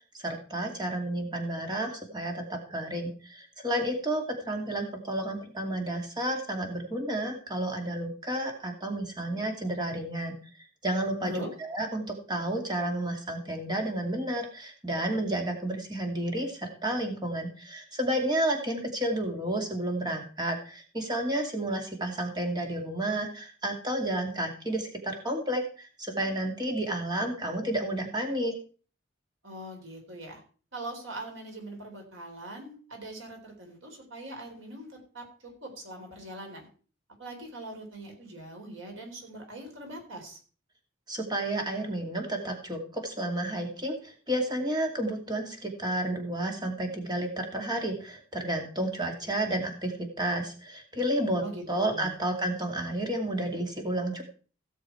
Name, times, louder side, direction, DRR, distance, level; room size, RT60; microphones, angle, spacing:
voice 1, 0.1-10.4 10.8-28.6 41.1-54.2, right 1 dB, 20° right, 3 dB, 2.4 m, -31 dB
voice 2, 29.4-30.4 30.7-36.7 37.2-40.4 51.4-52.1, right 1 dB, 80° right, 2 dB, 4.1 m, -42 dB
16.5 x 6.9 x 4.6 m, 0.39 s
head